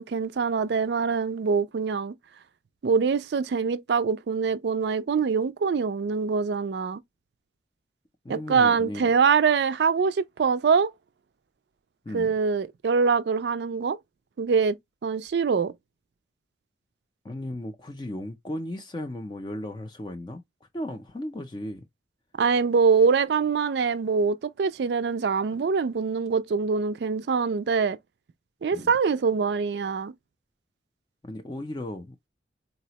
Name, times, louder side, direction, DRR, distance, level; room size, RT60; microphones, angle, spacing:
voice 1, 0.0-2.1 2.8-7.0 8.3-10.9 12.1-14.0 14.4-14.8 15.0-15.7 22.4-28.0 28.6-30.1, right 5 dB, 65° right, 0.4 m, -24 dB
voice 2, 8.2-9.1 12.1-12.3 17.2-20.4 20.7-21.8 28.7-28.9 31.2-32.3, left 1 dB, 25° left, 0.4 m, -36 dB
4.0 x 2.0 x 2.8 m
head